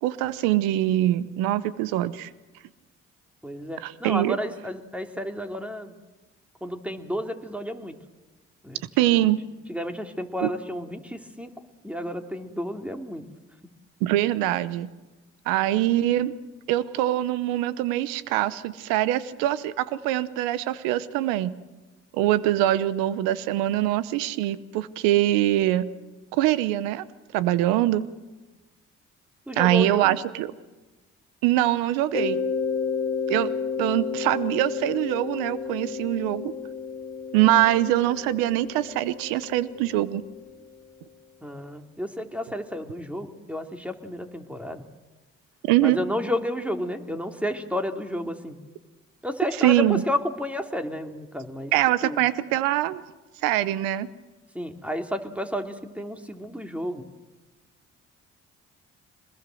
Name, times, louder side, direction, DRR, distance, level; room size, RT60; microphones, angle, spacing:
voice 1, 0.0-2.3 3.8-4.4 9.0-9.4 10.4-10.5 14.0-14.9 15.5-16.3 16.7-21.5 22.1-25.9 26.3-27.0 27.3-28.0 29.6-30.5 31.4-32.4 33.3-33.5 33.8-36.5 37.3-40.2 45.6-46.0 49.6-50.0 51.7-53.0 53.4-54.1, right 14 dB, 85° right, 17 dB, 0.9 m, -23 dB
voice 2, 3.4-6.0 6.6-7.9 8.6-8.8 9.1-9.3 9.7-11.5 11.8-13.2 29.5-30.2 41.4-44.8 45.8-48.6 49.2-51.7 52.0-52.2 54.5-57.0, left 1 dB, 5° right, 5 dB, 2.9 m, -31 dB
Mallet percussion, 32.1-40.7, left 6 dB, 25° left, 2.0 m, -32 dB
23.0 x 21.0 x 7.8 m, 1.2 s
hypercardioid pair, 50°, 33 cm